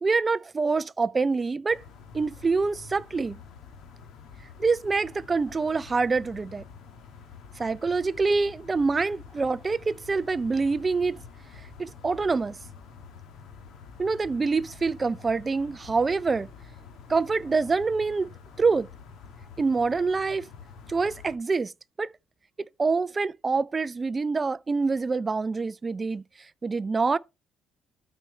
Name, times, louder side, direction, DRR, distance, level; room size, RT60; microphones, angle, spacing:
voice 1, 0.0-1.8 2.1-3.4 4.6-6.7 7.6-11.2 11.8-12.5 14.0-16.5 17.1-18.3 18.6-18.9 19.6-20.5 20.9-21.7 22.0-22.1 22.8-26.2 26.6-27.2, right 4 dB, 20° right, 0.3 m, -26 dB
sound 1, 1.7-21.4, left 6 dB, 65° left, 1.3 m, -47 dB
13.0 x 4.4 x 3.1 m
cardioid pair, 165°, 0 cm